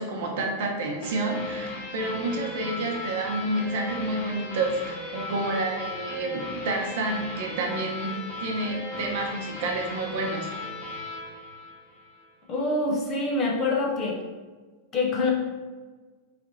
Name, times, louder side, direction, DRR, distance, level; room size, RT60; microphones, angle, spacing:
voice 1, 0.0-10.5, right 2 dB, 50° right, 0 dB, 0.8 m, -29 dB
sound 1, 1.0-12.3, left 2 dB, 35° left, 1.1 m, -37 dB
voice 2, 12.5-14.2 14.9-15.3, left 2 dB, 20° left, -2 dB, 0.6 m, -25 dB
6.0 x 3.3 x 2.7 m, 1.4 s
supercardioid pair, 180°, 0 cm